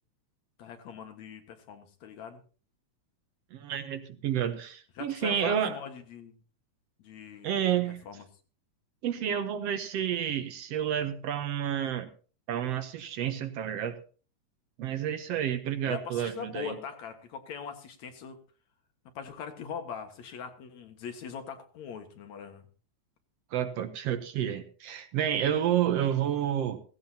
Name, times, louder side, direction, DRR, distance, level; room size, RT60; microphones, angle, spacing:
voice 1, 0.6-2.4 5.0-6.3 7.0-7.6 8.1-8.2 15.8-18.4 19.1-22.7, left 7 dB, 70° left, 6 dB, 2.8 m, -41 dB
voice 2, 3.5-5.8 7.4-8.0 9.0-12.1 12.5-14.0 14.8-16.8 23.5-26.8, right 10 dB, 70° right, 9 dB, 1.8 m, -30 dB
16.5 x 16.0 x 2.8 m, 0.38 s
omnidirectional pair, 3.3 m